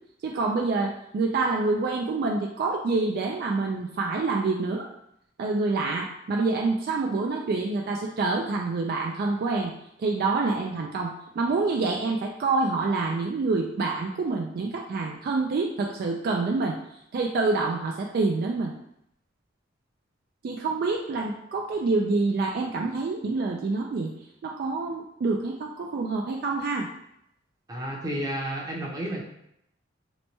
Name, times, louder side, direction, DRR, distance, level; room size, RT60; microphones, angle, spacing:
voice 1, 0.2-4.9 5.4-9.7 10.0-16.8 17.1-18.7 20.4-24.1 24.4-26.9, right 3 dB, 50° right, 0 dB, 0.3 m, -27 dB
voice 2, 27.7-29.2, right 1 dB, 20° right, -2 dB, 0.7 m, -31 dB
3.0 x 2.2 x 4.0 m, 0.76 s
head